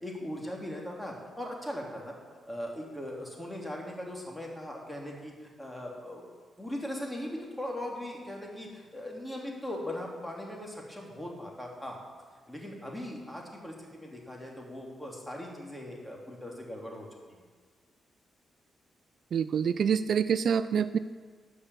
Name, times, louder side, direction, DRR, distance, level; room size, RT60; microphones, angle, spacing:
voice 1, 0.0-2.2 2.5-6.2 6.6-12.0 12.5-17.4, left 1 dB, 10° left, -1 dB, 2.9 m, -39 dB
voice 2, 19.3-21.0, right 7 dB, 65° right, 13 dB, 0.4 m, -26 dB
12.0 x 5.7 x 8.2 m, 1.5 s
cardioid pair, 75°, 0 cm